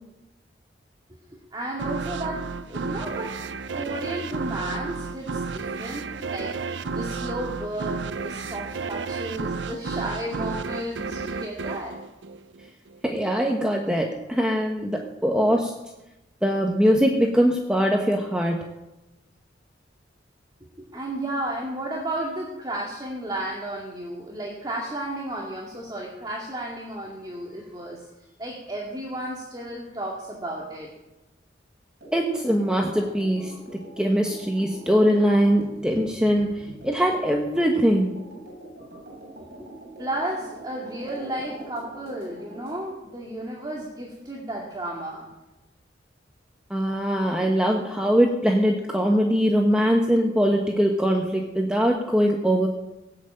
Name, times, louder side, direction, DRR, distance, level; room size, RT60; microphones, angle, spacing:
voice 1, 1.5-3.4 3.7-12.0 20.8-28.1 28.4-30.9 39.6-39.7 40.0-45.3, right 1 dB, 20° right, -3 dB, 2.2 m, -33 dB
sound 1, 1.8-13.0, right 4 dB, 90° right, 0.6 m, -32 dB
voice 2, 13.0-15.7 16.4-18.7 32.1-33.5 34.0-38.2 46.7-52.7, equal, 5° right, 1 dB, 1.1 m, -22 dB
sound 2, 32.0-42.8, right 1 dB, 60° right, 7.4 m, -43 dB
18.0 x 8.3 x 8.8 m, 1.0 s
head